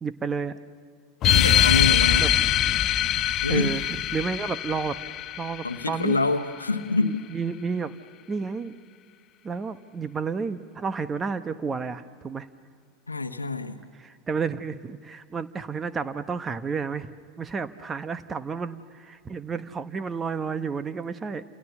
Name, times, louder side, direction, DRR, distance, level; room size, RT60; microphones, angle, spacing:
voice 1, 0.0-0.6 2.2-2.3 3.5-5.0 5.4-6.2 7.0-7.9 8.3-8.7 9.4-12.5 14.0-21.4, right 5 dB, 20° right, 13 dB, 1.0 m, -31 dB
sound 1, 1.2-6.2, left 11 dB, 40° left, 0.7 m, -23 dB
voice 2, 1.3-2.3 3.4-3.7 5.6-7.2 13.1-13.8, left 3 dB, 85° left, 7 dB, 1.1 m, -26 dB
29.5 x 27.5 x 7.1 m, 2.2 s
figure-of-eight pair, 80°, 0 cm